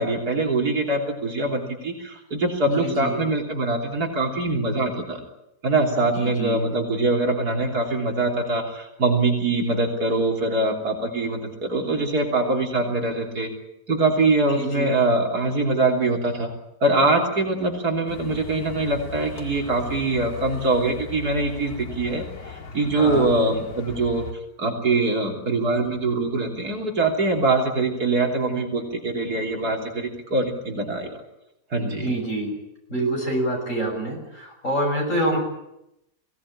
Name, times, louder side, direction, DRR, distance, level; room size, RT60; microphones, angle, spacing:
voice 1, 0.0-5.2 5.6-13.5 13.9-16.5 16.8-24.3 24.6-31.2 31.7-32.1, right 2 dB, 70° right, 1 dB, 3.9 m, -23 dB
voice 2, 2.7-3.2 6.1-6.6 14.5-14.9 22.9-23.3 32.0-32.6 32.9-35.4, right 1 dB, 50° left, 2 dB, 7.2 m, -26 dB
sound 1, 18.1-24.3, left 6 dB, 65° left, 2.4 m, -38 dB
22.5 x 17.5 x 10.0 m, 0.86 s
omnidirectional pair, 1.7 m